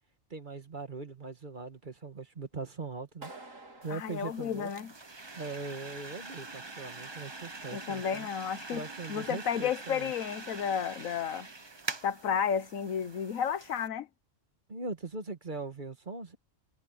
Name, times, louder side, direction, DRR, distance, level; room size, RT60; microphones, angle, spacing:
voice 1, 0.3-3.3 3.8-4.7 5.3-8.3 8.7-10.1 14.7-16.4, right 3 dB, 40° right, 1.6 m, -40 dB
Clapping, 3.2-5.3, right 2 dB, 75° right, 4.3 m, -50 dB
sound 1, 3.8-13.9, right 3 dB, 20° right, 1.1 m, -44 dB
voice 2, 3.9-4.9 7.7-8.8 9.1-11.5 12.0-14.1, left 8 dB, 85° left, 1.4 m, -32 dB
omnidirectional pair, 1.4 m